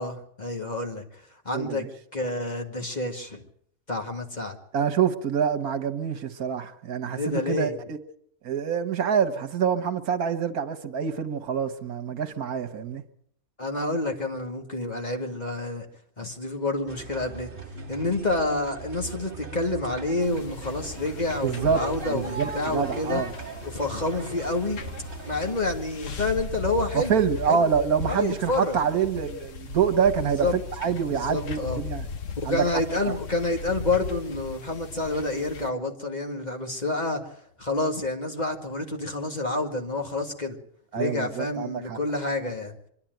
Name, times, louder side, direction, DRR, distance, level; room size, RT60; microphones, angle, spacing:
voice 1, 0.0-1.8 2.1-3.4 3.9-4.6 7.1-7.8 13.6-15.9 16.2-17.5 17.9-23.2 23.6-24.8 25.3-27.2 27.5-27.7 28.1-28.8 30.4-30.5 31.1-31.8 32.4-37.3 37.6-40.6 40.9-42.8, left 2 dB, 30° left, 2.1 m, -28 dB
voice 2, 1.5-1.9 4.7-8.0 8.4-13.0 21.4-23.3 26.9-32.1 32.4-33.1 40.9-42.0, right 7 dB, 80° right, 1.7 m, -26 dB
sound 1, 16.9-25.5, right 3 dB, 40° right, 1.7 m, -39 dB
sound 2, 20.2-35.7, left 6 dB, 60° left, 1.5 m, -38 dB
24.5 x 11.5 x 9.1 m
omnidirectional pair, 1.5 m